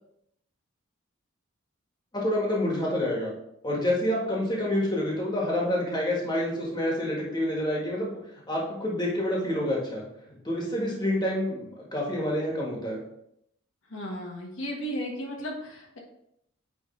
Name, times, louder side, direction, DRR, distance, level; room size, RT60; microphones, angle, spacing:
voice 1, 2.1-3.3 3.6-8.2 8.5-13.0, left 1 dB, 20° left, -3 dB, 1.5 m, -28 dB
voice 2, 13.9-16.0, equal, 75° left, -1 dB, 1.4 m, -35 dB
9.0 x 3.5 x 3.2 m, 0.75 s
head